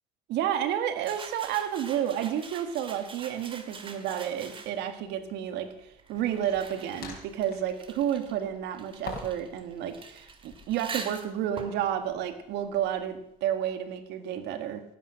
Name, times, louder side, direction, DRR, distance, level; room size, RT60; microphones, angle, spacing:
voice 1, 0.3-14.8, right 10 dB, 85° right, 9 dB, 1.7 m, -31 dB
sound 1, 1.0-5.0 5.8-13.2, right 4 dB, 30° right, 2.1 m, -45 dB
sound 2, 4.1-4.3 6.4-7.8 9.0-9.5 9.8-10.7, left 4 dB, 60° left, 4.7 m, -43 dB
18.0 x 9.3 x 6.4 m, 0.77 s
cardioid pair, 110°, 17 cm